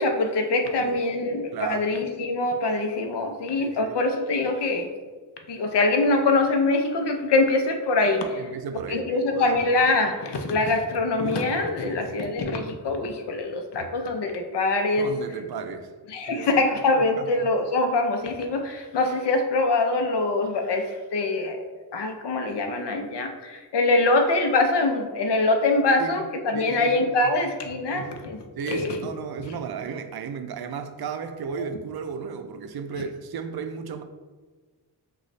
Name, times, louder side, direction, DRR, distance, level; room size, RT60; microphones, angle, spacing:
voice 1, 0.0-4.9 5.5-8.5 8.9-15.1 16.1-21.6 21.9-29.0 31.6-31.7 33.0-33.1, left 2 dB, 85° left, 5 dB, 0.7 m, -24 dB
voice 2, 1.5-1.8 3.6-4.0 8.4-9.6 11.8-12.1 15.0-15.9 16.3-16.5 17.2-17.3 26.0-26.2 26.5-27.3 27.7-34.0, right 6 dB, 65° right, 8 dB, 0.5 m, -35 dB
6.4 x 2.4 x 3.2 m, 1.4 s
wide cardioid pair, 100°, 40 cm